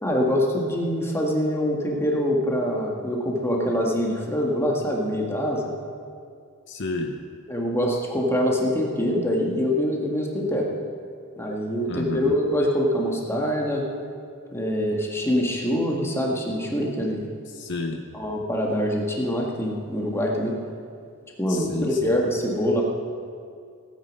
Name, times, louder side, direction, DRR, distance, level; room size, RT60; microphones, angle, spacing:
voice 1, 0.0-5.7 7.5-10.7 11.4-13.8 14.5-17.3 18.1-20.5 21.4-22.8, equal, 10° left, -1 dB, 1.7 m, -24 dB
voice 2, 6.7-7.2 11.9-12.4 17.5-18.0 21.5-22.2, left 3 dB, 55° left, 4 dB, 0.8 m, -31 dB
17.0 x 9.2 x 5.3 m, 2.3 s
head